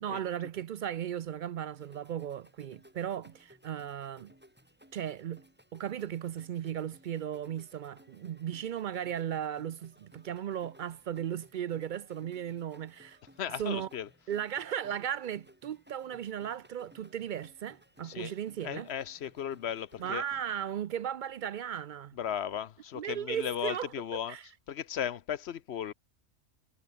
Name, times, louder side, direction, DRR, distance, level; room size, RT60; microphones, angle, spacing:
voice 1, 0.0-4.3 4.9-5.4 5.7-13.2 13.6-13.9 14.3-18.9 20.0-22.2 22.9-23.9 24.3-24.5, right 9 dB, 60° right, 0.5 m, -36 dB
sound 1, 1.7-20.5, equal, 10° right, 6.5 m, -60 dB
voice 2, 13.4-14.1 18.0-18.3 18.6-20.2 22.2-24.4 24.7-25.9, left 9 dB, 65° left, 0.9 m, -36 dB
omnidirectional pair, 1.2 m